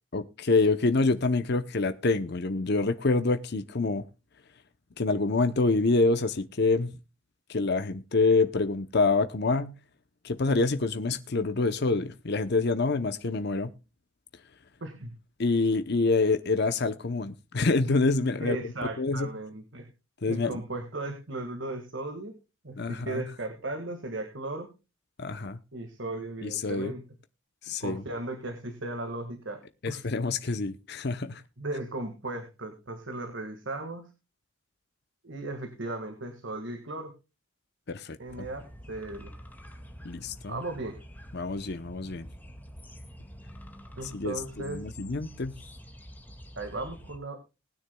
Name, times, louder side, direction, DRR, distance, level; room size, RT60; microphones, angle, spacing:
voice 1, 0.1-4.0 5.0-6.9 7.5-9.8 10.2-13.7 15.4-18.6 19.0-19.3 20.2-20.6 22.8-23.2 25.2-25.6 26.4-26.9 27.6-28.0 29.8-31.4 37.9-38.5 40.0-40.6 41.3-42.3 44.0-45.5, left 3 dB, 50° left, 0.8 m, -26 dB
voice 2, 14.8-15.1 18.4-19.9 20.3-22.4 22.6-24.7 25.7-27.0 27.8-29.6 29.9-30.0 31.6-34.1 35.2-37.1 38.2-39.3 40.5-41.0 44.0-44.8 46.6-47.4, right 2 dB, 60° right, 1.8 m, -36 dB
sound 1, 38.3-47.2, equal, 10° left, 1.9 m, -47 dB
20.0 x 9.7 x 2.3 m
head